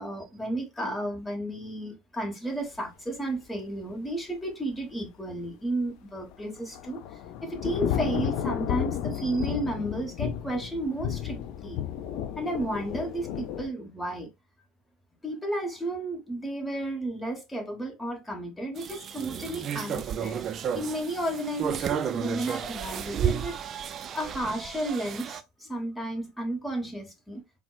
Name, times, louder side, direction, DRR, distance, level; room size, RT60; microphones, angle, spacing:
voice 1, 0.0-11.8 12.3-14.3 15.2-23.5 24.1-27.4, right 1 dB, 10° left, 1.2 m, -33 dB
Thunder / Rain, 6.3-13.7, left 10 dB, 65° left, 0.4 m, -32 dB
sound 1, 18.8-25.4, right 8 dB, 40° right, 0.3 m, -32 dB
4.2 x 2.0 x 2.3 m
hypercardioid pair, 85°, 0 cm